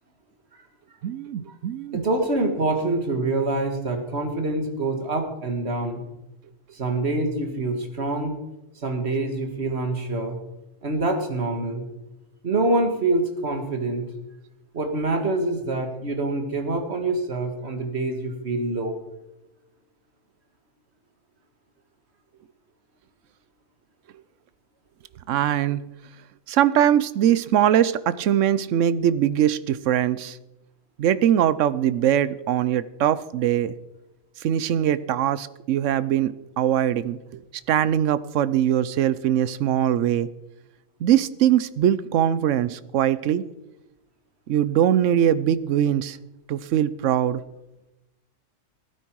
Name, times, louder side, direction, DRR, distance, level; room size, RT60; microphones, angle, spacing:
voice 1, 1.0-2.0 25.3-25.9 26.5-30.4 31.0-33.8 34.4-37.4 37.7-40.3 41.0-43.4 44.5-46.2 46.5-47.4, right 10 dB, 75° right, 17 dB, 1.0 m, -22 dB
voice 2, 1.9-6.0 6.7-8.4 8.8-10.4 10.8-11.9 12.4-14.1 14.7-19.0, right 2 dB, 55° right, 5 dB, 2.1 m, -25 dB
15.0 x 13.0 x 4.7 m, 0.98 s
omnidirectional pair, 1.3 m